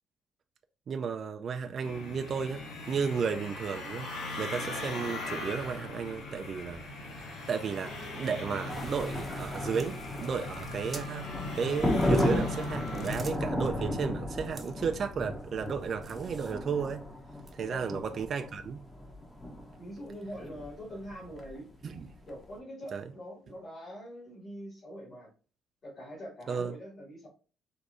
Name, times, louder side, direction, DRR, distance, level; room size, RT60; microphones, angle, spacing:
voice 1, 0.9-4.1 4.4-6.8 7.5-17.1 17.5-18.8 21.8-22.1 22.9-23.0 26.5-26.7, right 6 dB, 40° right, 0.3 m, -33 dB
sound 1, 1.8-13.3, left 2 dB, 70° left, 1.8 m, -40 dB
sound 2, 8.7-22.4, left 1 dB, 15° left, 0.9 m, -34 dB
sound 3, 9.6-11.3 11.8-13.7 14.4-14.9 15.4-16.8 17.4-17.5, right 3 dB, 20° right, 0.7 m, -50 dB
voice 2, 19.8-21.7 22.3-25.3 25.8-27.3, equal, 35° left, 2.2 m, -44 dB
4.7 x 2.6 x 3.9 m
cardioid pair, 135°, 0 cm